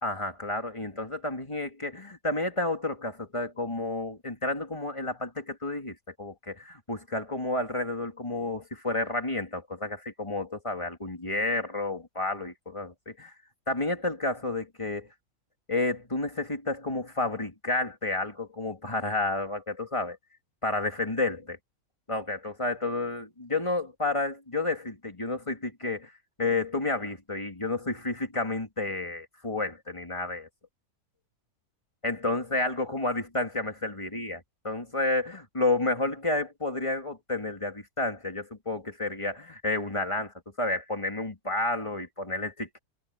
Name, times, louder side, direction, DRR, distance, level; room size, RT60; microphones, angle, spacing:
voice 1, 0.0-13.3 13.7-15.1 15.7-20.2 20.6-21.6 22.1-26.1 26.4-30.5 32.0-42.8, left 2 dB, 20° left, 3.0 m, -31 dB
omnidirectional pair, 1.6 m